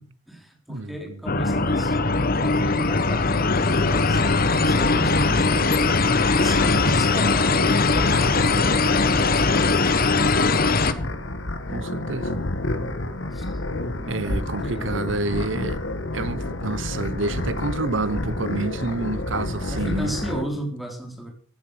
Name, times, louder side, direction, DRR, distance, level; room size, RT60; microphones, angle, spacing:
voice 1, 0.0-2.0 2.3-11.2 12.4-13.6 13.9-15.9 16.2-16.4 19.7-21.3, right 1 dB, ahead, 4.0 m, -36 dB
voice 2, 0.7-1.2 11.7-12.4 14.1-15.8 16.1-20.1, right 2 dB, 75° right, 1.2 m, -28 dB
sound 1, 1.3-10.9, left 3 dB, 50° left, 1.2 m, -20 dB
sound 2, 3.7-20.4, left 1 dB, 75° left, 2.0 m, -29 dB
16.5 x 10.5 x 6.5 m
head